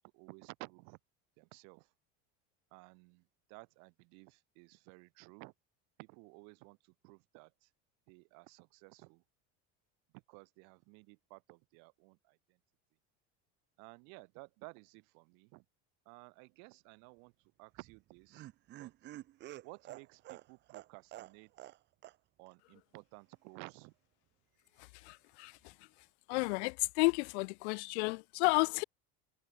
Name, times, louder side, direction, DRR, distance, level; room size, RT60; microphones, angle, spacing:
voice 1, 0.1-1.0 1.4-1.9 2.7-5.5 6.0-7.7 8.1-9.2 10.1-12.6 13.8-15.6 16.0-18.5 18.8-18.9 19.6-21.7 22.4-23.9, right 35 dB, 55° right, 3.4 m, -55 dB
Laughter, 17.7-21.8 22.0-22.2 22.5-22.6, right 15 dB, 30° right, 1.8 m, -49 dB
voice 2, 24.8-25.7 26.3-28.8, left 28 dB, 85° left, 0.5 m, -32 dB
cardioid pair, 180°, 33 cm